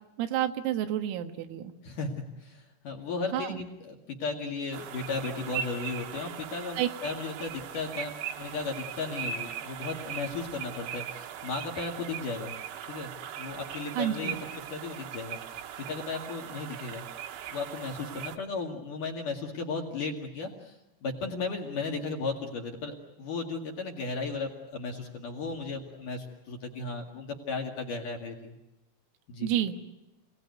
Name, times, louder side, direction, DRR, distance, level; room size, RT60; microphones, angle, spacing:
voice 1, 0.2-1.7 3.3-3.6 6.8-6.9 14.0-14.4 29.4-29.8, right 11 dB, 90° right, 6 dB, 4.1 m, -29 dB
voice 2, 1.8-12.5 12.9-13.1 13.4-14.4 14.7-15.4 15.8-17.1 17.5-20.7 21.0-28.5 29.3-29.5, left 4 dB, 50° left, 1 dB, 2.8 m, -35 dB
sound 1, 4.7-18.4, right 9 dB, 75° right, 3.3 m, -39 dB
28.5 x 18.0 x 9.4 m, 0.99 s
omnidirectional pair, 5.9 m